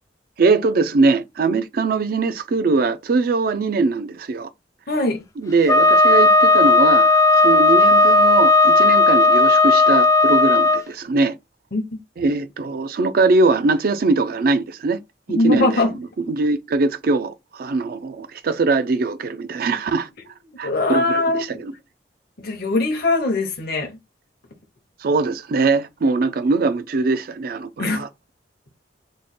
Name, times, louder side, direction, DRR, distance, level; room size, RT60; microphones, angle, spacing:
voice 1, 0.4-4.5 5.4-7.1 7.3-11.3 12.2-15.0 15.3-15.8 16.3-20.1 20.6-21.2 21.6-21.7 25.0-28.1, right 3 dB, 55° right, 0.4 m, -21 dB
voice 2, 4.9-5.2 11.7-12.0 15.3-15.9 20.6-21.6 22.4-24.0 27.8-28.0, left 2 dB, 60° left, 0.7 m, -21 dB
Wind instrument woodwind instrument, 5.7-10.8, left 2 dB, 20° left, 0.3 m, -14 dB
3.1 x 2.1 x 4.2 m
head